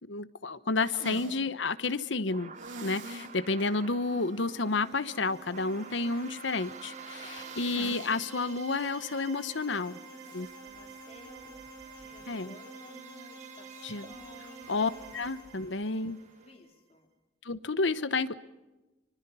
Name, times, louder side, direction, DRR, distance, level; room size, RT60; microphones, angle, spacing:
voice 1, 0.0-2.5 2.8-10.0 10.3-10.5 12.3-12.5 13.8-14.0 14.7-16.2 17.4-18.3, left 3 dB, 75° left, 14 dB, 1.0 m, -31 dB
sound 1, 0.8-1.4 2.6-3.3 3.7-3.8 4.2-4.3 7.0-8.2 8.5-8.6 10.2-10.6, right 2 dB, 85° right, 2.9 m, -44 dB
sound 2, 2.3-16.5, right 5 dB, 40° right, 1.1 m, -51 dB
sound 3, 4.0-16.7, right 4 dB, 60° right, 7.9 m, -49 dB
voice 2, 7.2-7.6 10.0-11.7 11.9-14.8 15.8-15.9 16.4-17.1, left 2 dB, 30° left, 2 dB, 3.9 m, -55 dB
25.0 x 24.5 x 5.6 m, 1.1 s
head